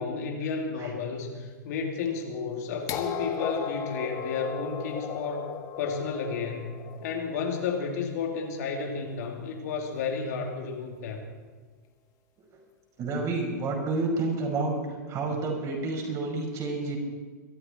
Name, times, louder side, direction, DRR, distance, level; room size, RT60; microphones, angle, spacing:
voice 1, 0.0-5.5 5.8-11.3, left 5 dB, 60° left, 1 dB, 2.8 m, -32 dB
sound 1, 2.9-8.7 9.9-10.0, left 6 dB, 35° left, 1.7 m, -36 dB
voice 2, 13.0-14.8 15.1-17.0, right 3 dB, 35° right, 0 dB, 5.5 m, -29 dB
23.0 x 13.0 x 4.5 m, 1.5 s
hypercardioid pair, 110°, 10 cm